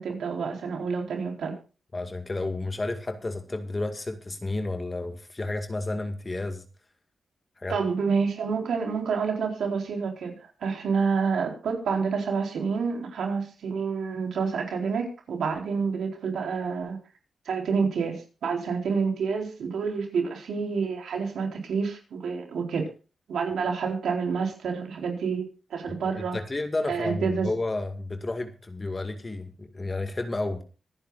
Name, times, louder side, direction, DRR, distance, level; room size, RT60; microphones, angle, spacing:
voice 1, 0.0-1.5 7.7-10.3 10.6-17.0 17.5-22.9 23.3-25.4 25.7-26.4 26.9-27.5, right 5 dB, 90° right, 2 dB, 4.2 m, -28 dB
voice 2, 1.9-6.6 7.6-7.8 25.9-30.6, left 2 dB, 30° left, 7 dB, 2.0 m, -31 dB
25.0 x 10.5 x 2.5 m, 0.34 s
cardioid pair, 85°, 0 cm